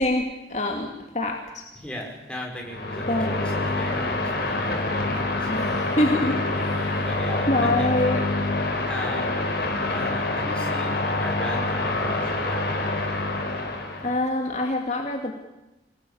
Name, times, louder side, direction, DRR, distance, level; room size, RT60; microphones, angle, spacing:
voice 1, 0.0-1.6 3.1-3.4 5.5-7.0 7.5-8.2 14.0-15.3, left 1 dB, 40° left, 2 dB, 2.3 m, -25 dB
voice 2, 1.7-6.1 7.0-7.9 8.9-9.3 9.9-12.8, left 1 dB, 5° left, -1 dB, 5.7 m, -37 dB
sound 1, 2.6-14.2, left 2 dB, 55° left, 5.0 m, -26 dB
26.0 x 19.0 x 8.6 m, 1.0 s
head